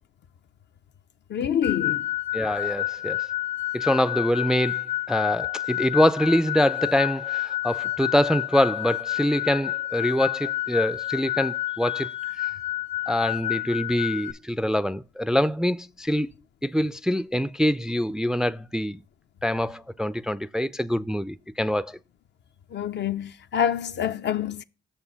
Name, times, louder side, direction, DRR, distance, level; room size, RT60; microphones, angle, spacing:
voice 1, 1.3-2.1 22.7-24.6, left 9 dB, 55° left, 0.5 m, -26 dB
sound 1, 1.6-14.3, left 15 dB, 80° left, 1.0 m, -29 dB
voice 2, 2.3-3.2 3.7-12.5 13.1-16.3 16.6-19.0 19.4-22.0, left 1 dB, 5° right, 0.3 m, -25 dB
6.6 x 4.5 x 5.6 m
supercardioid pair, 50°, 21 cm